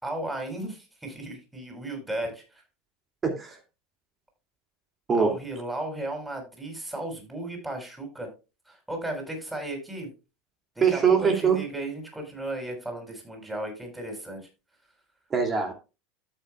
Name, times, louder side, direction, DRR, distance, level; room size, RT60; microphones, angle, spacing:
voice 1, 0.0-2.6 5.2-8.3 8.7-10.1 10.7-14.5, right 1 dB, 10° right, 3 dB, 6.5 m, -35 dB
voice 2, 3.2-3.6 5.1-5.3 10.8-11.6 15.3-15.7, right 6 dB, 30° right, 4 dB, 2.4 m, -22 dB
13.5 x 8.8 x 2.3 m, 0.29 s
hypercardioid pair, 85°, 0 cm